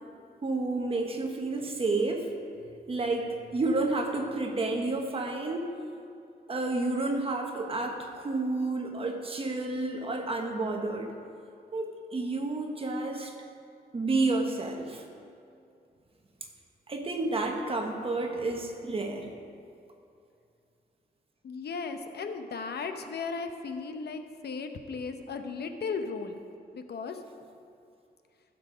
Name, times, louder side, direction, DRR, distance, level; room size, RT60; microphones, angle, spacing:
voice 1, 0.4-2.3 2.9-5.7 6.5-11.1 11.7-13.3 13.9-15.0 16.9-19.3, right 2 dB, 35° right, 3 dB, 1.1 m, -30 dB
voice 2, 21.4-26.4 26.7-27.2, left 4 dB, 75° left, 7 dB, 0.8 m, -36 dB
15.0 x 7.2 x 5.1 m, 2.5 s
wide cardioid pair, 170°, 17 cm